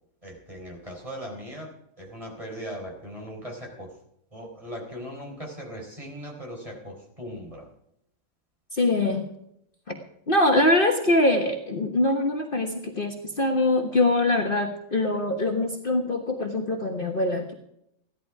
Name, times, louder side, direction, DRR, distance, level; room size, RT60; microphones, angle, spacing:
voice 1, 0.2-3.9 4.3-7.7, equal, 25° right, 0 dB, 4.2 m, -39 dB
voice 2, 8.7-9.3 9.9-10.0 10.3-17.5, left 2 dB, 40° left, 2 dB, 1.5 m, -23 dB
16.0 x 12.0 x 4.8 m, 0.76 s
omnidirectional pair, 1.5 m